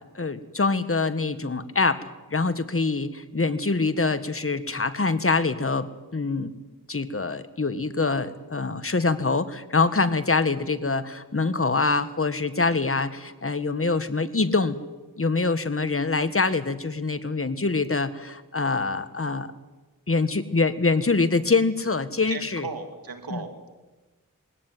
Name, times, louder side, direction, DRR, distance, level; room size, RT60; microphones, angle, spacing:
voice 1, 0.1-6.5 6.9-14.8 15.2-19.5 20.1-22.7 23.3-23.4, left 3 dB, 40° left, 11 dB, 1.7 m, -25 dB
voice 2, 22.3-23.7, right 4 dB, 90° right, 5 dB, 2.9 m, -36 dB
22.5 x 17.5 x 9.4 m, 1.2 s
cardioid pair, 45°, 34 cm